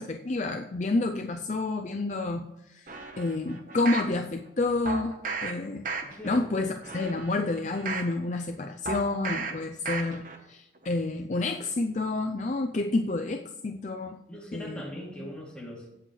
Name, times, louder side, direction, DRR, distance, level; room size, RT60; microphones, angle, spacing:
voice 1, 0.0-2.9 3.2-5.9 6.2-14.2 14.5-14.8, left 2 dB, 40° left, 5 dB, 0.5 m, -29 dB
sound 1, 2.9-4.1 4.9-5.5 5.8-6.4 6.8-8.1 8.9-9.5 9.9-10.4 10.8-10.9, right 4 dB, 45° right, 1.1 m, -35 dB
voice 2, 6.0-6.7 14.3-15.9, equal, 5° left, -4 dB, 2.7 m, -41 dB
17.0 x 7.7 x 3.2 m, 0.91 s
head